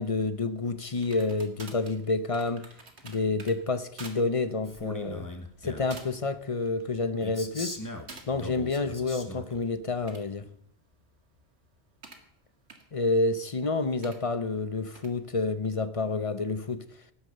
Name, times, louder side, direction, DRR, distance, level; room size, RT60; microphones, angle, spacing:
voice 1, 0.0-2.7 3.0-5.3 5.6-7.8 8.3-10.4 12.9-16.8, left 3 dB, 35° left, 0.8 m, -29 dB
sound 1, 1.0-3.6 4.0-4.2 4.6-4.8 5.5-5.6 5.9-6.3 6.7-7.2 8.1-8.3 9.8-12.3 12.7-12.8 14.0-14.2 14.9-15.1, right 3 dB, 90° right, 2.1 m, -48 dB
Male speech man speaking, 4.6-6.0 7.2-9.6, left 1 dB, 20° left, 1.6 m, -40 dB
17.5 x 9.8 x 6.7 m
omnidirectional pair, 1.1 m